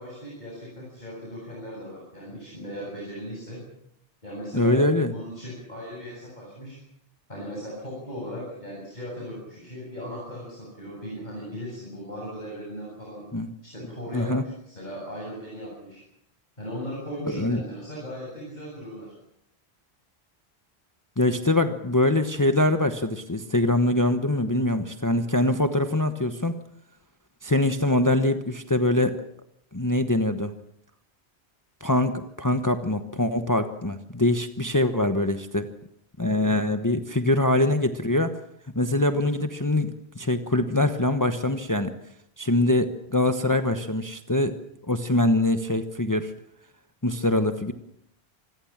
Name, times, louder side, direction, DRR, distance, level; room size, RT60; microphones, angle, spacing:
voice 1, 0.0-3.6 4.2-4.8 5.1-6.8 7.3-13.3 13.6-16.0 16.6-19.1 36.3-36.6, equal, 45° left, -3 dB, 8.2 m, -37 dB
voice 2, 4.5-5.1 13.3-13.5 14.1-14.4 17.3-17.6 21.2-26.6 27.4-29.2 29.7-30.5 31.8-35.7 36.2-38.4 38.7-41.9 42.4-44.5 44.9-46.3 47.0-47.7, left 1 dB, 20° left, 8 dB, 1.1 m, -23 dB
26.5 x 20.5 x 7.3 m, 0.74 s
omnidirectional pair, 1.1 m